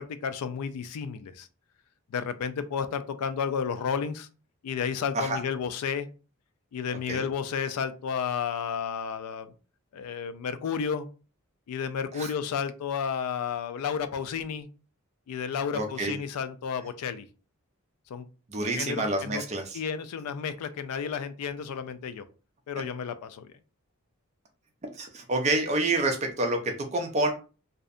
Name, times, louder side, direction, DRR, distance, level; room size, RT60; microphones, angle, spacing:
voice 1, 0.0-1.5 2.1-4.3 4.6-6.1 6.7-9.5 9.9-11.1 11.7-14.7 15.3-17.3 18.1-18.3 18.8-19.4 19.7-22.2 22.7-23.5, left 7 dB, 90° left, 12 dB, 0.3 m, -32 dB
voice 2, 15.7-16.2 18.5-19.8 24.9-27.3, right 2 dB, 30° right, 3 dB, 0.4 m, -28 dB
2.6 x 2.1 x 2.4 m, 0.34 s
head